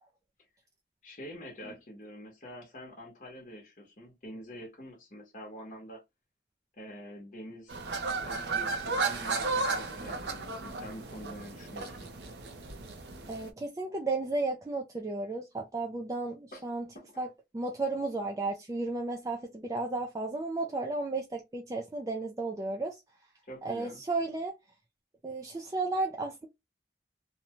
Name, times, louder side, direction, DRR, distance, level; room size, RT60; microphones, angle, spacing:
voice 1, 1.0-6.0 6.7-7.8 8.1-12.1 16.5-16.6 16.9-17.3 23.4-24.0, equal, 45° left, 0.9 m, -46 dB
sound 1, 7.7-13.5, right 3 dB, 75° right, 0.6 m, -34 dB
voice 2, 13.3-16.8 17.2-17.3 17.5-23.0 23.6-24.5 25.2-26.5, right 3 dB, 20° right, 0.3 m, -33 dB
2.6 x 2.1 x 2.8 m
head